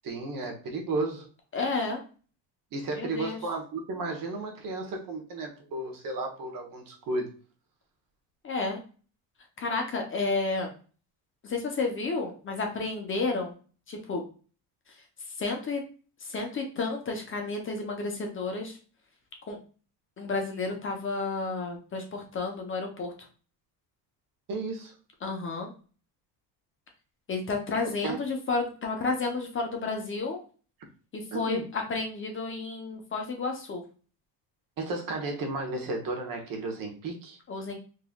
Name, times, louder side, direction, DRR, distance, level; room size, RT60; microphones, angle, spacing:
voice 1, 0.0-1.2 2.7-7.3 24.5-24.9 28.0-28.2 31.3-31.6 34.8-37.4, right 2 dB, 45° right, 2 dB, 1.1 m, -33 dB
voice 2, 1.5-2.0 3.0-3.4 8.4-8.8 9.6-10.7 11.4-13.5 13.9-14.2 15.4-15.8 16.2-18.8 19.5-19.6 20.2-23.1 25.2-25.7 27.3-30.4 31.1-33.8 37.5-37.8, left 3 dB, 25° left, 2 dB, 0.8 m, -31 dB
3.7 x 3.0 x 2.3 m, 0.38 s
cardioid pair, 125°, 45 cm